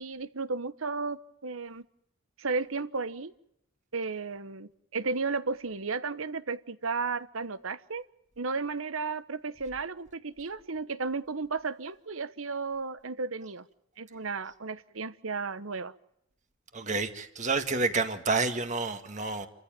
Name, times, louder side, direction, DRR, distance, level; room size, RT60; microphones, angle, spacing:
voice 1, 0.0-1.8 2.4-3.3 3.9-8.1 8.4-13.6 14.0-15.9, right 4 dB, 80° right, 1.1 m, -34 dB
voice 2, 16.7-19.5, right 3 dB, 35° right, 1.9 m, -29 dB
28.5 x 14.5 x 8.9 m
head